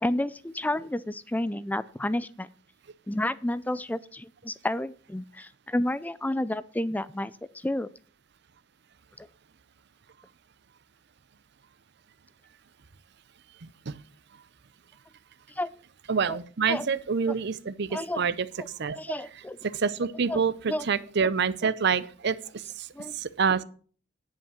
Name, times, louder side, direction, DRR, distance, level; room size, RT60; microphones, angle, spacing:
voice 1, 0.0-2.5 3.1-7.9 9.2-9.3 15.6-15.7 16.3-16.4 16.7-16.9 17.3-17.4 17.9-18.2 19.0-19.6 20.3-20.4 20.7-20.9 22.9-23.1, left 1 dB, 10° left, 17 dB, 0.4 m, -30 dB
voice 2, 16.1-18.5 18.8-19.0 19.6-22.9 23.1-23.6, right 6 dB, 55° right, 16 dB, 0.6 m, -27 dB
10.0 x 5.6 x 6.4 m, 0.43 s
head